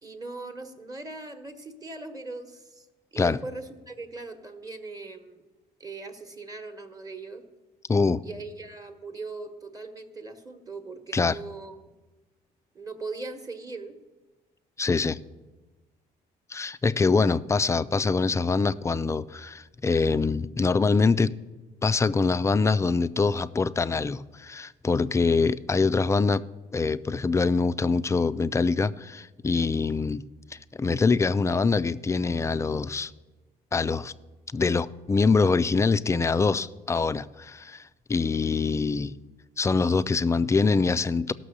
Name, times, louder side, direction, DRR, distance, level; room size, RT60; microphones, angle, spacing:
voice 1, 0.0-2.9 3.1-5.4 5.8-7.4 8.2-11.7 12.7-14.0, right 3 dB, 20° right, 1.1 m, -39 dB
voice 2, 7.9-8.2 11.1-11.4 14.8-15.2 16.5-21.3 21.8-26.4 26.7-30.2 30.5-33.1 33.7-34.1 34.5-39.1 39.6-41.3, left 4 dB, 15° left, 0.3 m, -24 dB
15.5 x 6.1 x 6.5 m
cardioid pair, 110°, 17 cm